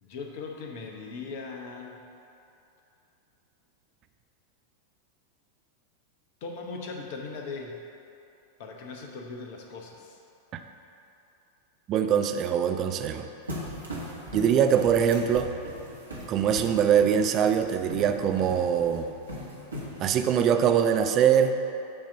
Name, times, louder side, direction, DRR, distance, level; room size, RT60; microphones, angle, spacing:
voice 1, 0.0-2.0 6.4-7.8 8.6-10.2, left 4 dB, 50° left, 1 dB, 0.9 m, -39 dB
voice 2, 11.9-13.3 14.3-15.5 16.3-19.1 20.0-21.6, right 8 dB, 35° right, 6 dB, 0.4 m, -23 dB
sound 1, 13.5-20.3, equal, 80° right, 1.3 m, -40 dB
8.5 x 2.9 x 5.8 m, 2.7 s
figure-of-eight pair, 90°, 0 cm